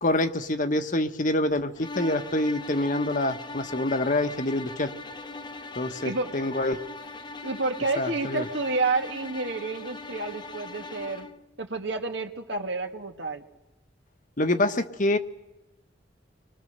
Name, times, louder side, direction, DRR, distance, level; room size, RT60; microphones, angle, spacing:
voice 1, 0.0-4.9 5.7-6.8 8.0-8.4 14.4-15.2, left 1 dB, 45° left, 8 dB, 1.3 m, -26 dB
sound 1, 1.8-11.4, left 3 dB, 25° left, 1.1 m, -40 dB
voice 2, 7.4-11.3 11.6-13.4, right 3 dB, 75° right, 5 dB, 2.1 m, -29 dB
29.0 x 24.0 x 6.8 m, 0.94 s
head